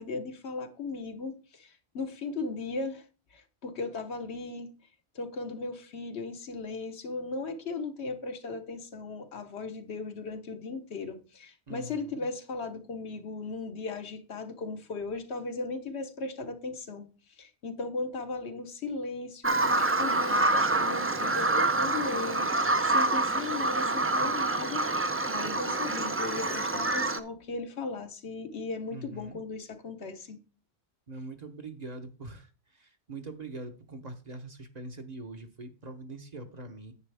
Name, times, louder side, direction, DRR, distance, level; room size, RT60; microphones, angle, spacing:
voice 1, 0.0-3.0 3.3-4.7 5.1-17.1 17.4-24.9 25.3-30.4, left 3 dB, 75° left, 1.3 m, -37 dB
voice 2, 11.7-12.2 28.9-29.4 31.1-32.5 32.7-36.9, right 2 dB, 40° right, 1.0 m, -43 dB
Bird vocalization bird call bird song, 19.4-27.2, right 2 dB, 20° right, 0.4 m, -27 dB
9.7 x 7.8 x 3.4 m
omnidirectional pair, 1.1 m